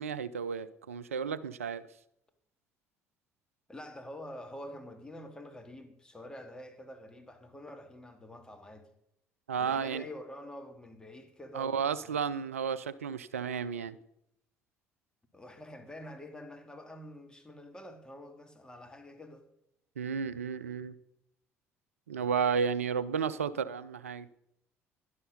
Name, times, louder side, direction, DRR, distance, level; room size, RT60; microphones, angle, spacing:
voice 1, 0.0-1.9 9.5-10.0 11.5-14.0 20.0-20.9 22.1-24.3, right 6 dB, 80° right, 0.5 m, -32 dB
voice 2, 3.7-8.9 9.6-12.2 15.3-19.5, left 1 dB, 10° left, 2.7 m, -47 dB
16.5 x 11.5 x 5.4 m
figure-of-eight pair, 55°, 7 cm